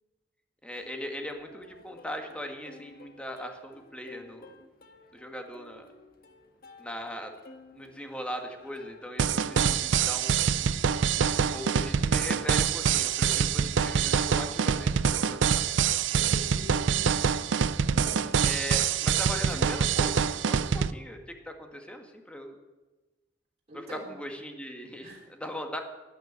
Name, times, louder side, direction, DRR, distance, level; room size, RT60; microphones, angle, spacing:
voice 1, 0.6-4.5 5.1-5.9 6.8-7.3 7.7-10.4 11.4-15.7 18.4-21.2 21.4-22.6 23.7-25.8, equal, 5° left, 4 dB, 1.8 m, -39 dB
Plucked string instrument, 0.7-19.7, left 2 dB, 55° left, 1.6 m, -53 dB
sound 1, 9.2-20.9, right 7 dB, 90° right, 0.5 m, -25 dB
voice 2, 16.1-17.2 18.0-18.4 23.7-24.2 25.0-25.3, equal, 35° right, -4 dB, 3.3 m, -43 dB
12.0 x 9.7 x 9.6 m, 1.2 s
head